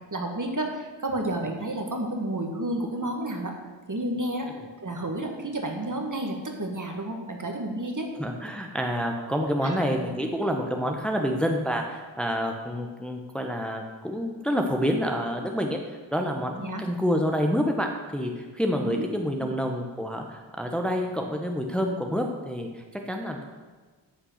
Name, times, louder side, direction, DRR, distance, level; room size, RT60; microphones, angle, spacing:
voice 1, 0.1-3.5 3.9-4.5 4.8-8.1 9.6-10.1 16.6-16.8 18.8-19.0 19.4-19.5, right 1 dB, 40° right, 2 dB, 2.0 m, -31 dB
voice 2, 8.2-23.4, equal, ahead, 3 dB, 1.1 m, -28 dB
10.0 x 5.7 x 8.1 m, 1.3 s
cardioid pair, 55°, 45 cm